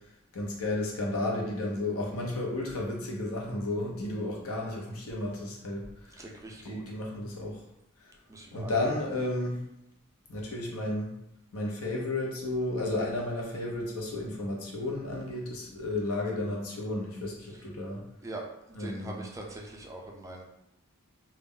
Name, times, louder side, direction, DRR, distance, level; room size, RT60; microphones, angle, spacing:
voice 1, 0.3-6.3 6.6-7.6 8.0-8.1 8.5-9.6 10.3-11.1 11.5-18.0 18.7-19.2, left 2 dB, 80° left, -2 dB, 0.7 m, -33 dB
voice 2, 6.2-6.8 8.3-8.7 18.2-18.4 18.8-20.4, right 2 dB, 15° right, -1 dB, 0.3 m, -42 dB
2.3 x 2.0 x 3.6 m, 0.85 s
head